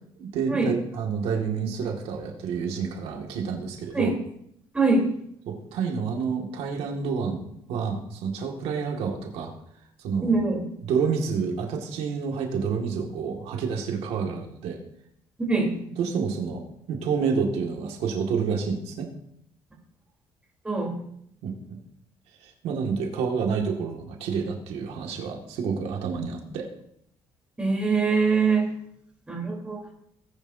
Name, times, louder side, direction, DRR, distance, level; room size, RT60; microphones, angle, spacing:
voice 1, 0.2-4.1 5.5-9.5 10.0-10.4 10.8-14.8 16.0-16.6 16.9-19.1 21.4-21.8 22.4-26.7, right 5 dB, 85° right, 1 dB, 2.0 m, -29 dB
voice 2, 4.7-5.1 10.2-10.6 15.4-15.7 20.6-21.0 26.1-26.2 27.6-28.7 29.3-29.8, right 4 dB, 10° right, -1 dB, 3.6 m, -23 dB
18.5 x 10.0 x 2.7 m, 0.72 s
cardioid pair, 145°, 10 cm